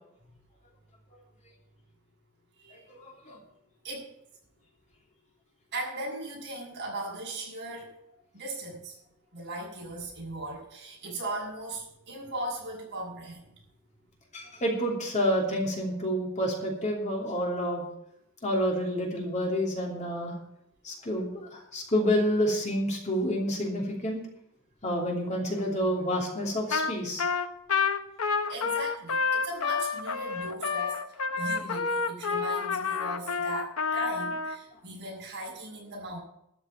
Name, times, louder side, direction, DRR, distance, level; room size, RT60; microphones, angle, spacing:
voice 1, 2.7-3.4 14.3-17.8 18.4-20.3 20.8-24.2 24.8-27.2, equal, 35° left, -1 dB, 3.0 m, -29 dB
voice 2, 5.7-7.9 8.3-9.0 9.3-13.5 28.5-31.0 31.4-36.2, right 2 dB, 50° right, -3 dB, 6.7 m, -38 dB
Trumpet, 26.7-26.9 27.2-34.6, left 5 dB, 70° left, 1.0 m, -29 dB
13.0 x 6.8 x 8.7 m, 0.77 s
head